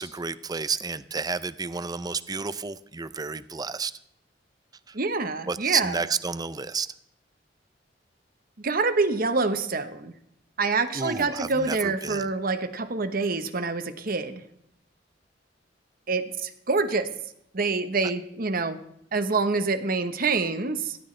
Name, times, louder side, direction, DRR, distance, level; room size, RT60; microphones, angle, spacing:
voice 1, 0.0-3.9 4.9-5.0 5.5-6.9 10.9-12.3, right 5 dB, 20° right, 15 dB, 0.5 m, -30 dB
voice 2, 4.9-6.0 8.6-10.1 10.6-14.4 16.1-17.1 17.5-18.8 19.1-21.0, right 4 dB, 55° right, 10 dB, 1.1 m, -26 dB
18.0 x 14.0 x 3.3 m, 0.73 s
head